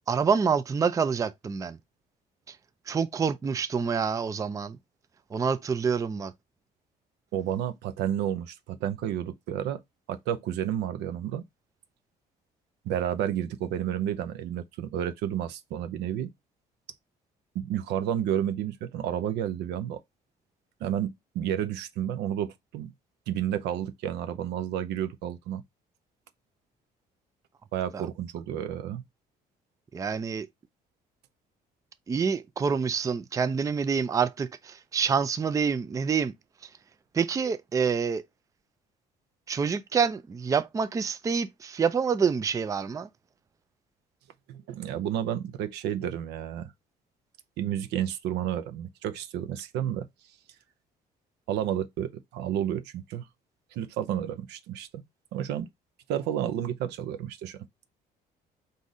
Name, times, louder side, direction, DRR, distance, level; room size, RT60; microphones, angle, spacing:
voice 1, 0.1-1.8 2.9-4.8 5.3-6.3 27.9-28.0 29.9-30.5 32.1-36.3 37.1-38.2 39.5-43.1, right 6 dB, 20° right, 0.4 m, -27 dB
voice 2, 7.3-9.8 10.1-11.4 12.8-16.3 17.5-20.0 20.8-22.9 23.3-25.6 27.7-29.0 44.5-46.7 47.6-50.1 51.5-53.3 53.7-55.0 55.3-55.7 56.1-57.6, right 10 dB, 85° right, 0.6 m, -31 dB
4.0 x 2.6 x 4.7 m
cardioid pair, 110°, 17 cm